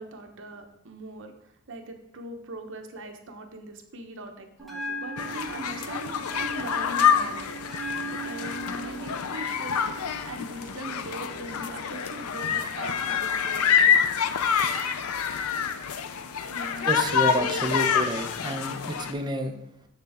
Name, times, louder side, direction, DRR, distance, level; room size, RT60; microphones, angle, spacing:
voice 1, 0.0-1.3 1.7-7.5 8.2-9.8 10.3-13.8 16.5-16.9 17.1-17.3, right 1 dB, 60° right, 4 dB, 0.9 m, -40 dB
Bell, 4.6-12.6, right 1 dB, ahead, 1.2 m, -39 dB
sound 1, 5.2-19.1, left 7 dB, 90° left, 0.5 m, -27 dB
voice 2, 16.8-19.7, right 1 dB, 20° right, 5 dB, 0.6 m, -29 dB
6.7 x 6.6 x 3.5 m, 0.79 s
head